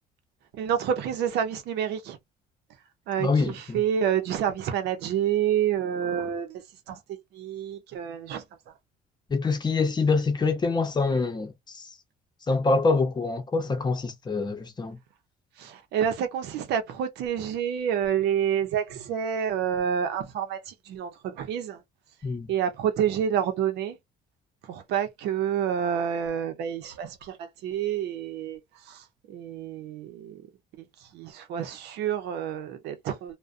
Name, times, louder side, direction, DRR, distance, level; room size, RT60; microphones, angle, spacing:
voice 1, 0.6-2.2 3.1-6.6 6.9-8.4 15.6-21.8 22.5-24.0 24.6-28.6 28.9-30.4 30.8-30.9 31.1-33.4, right 9 dB, 80° right, 0.7 m, -28 dB
voice 2, 3.2-3.8 9.3-11.9 12.5-15.0 22.2-22.5, left 3 dB, 25° left, 0.8 m, -25 dB
2.3 x 2.2 x 2.5 m
cardioid pair, 110°, 17 cm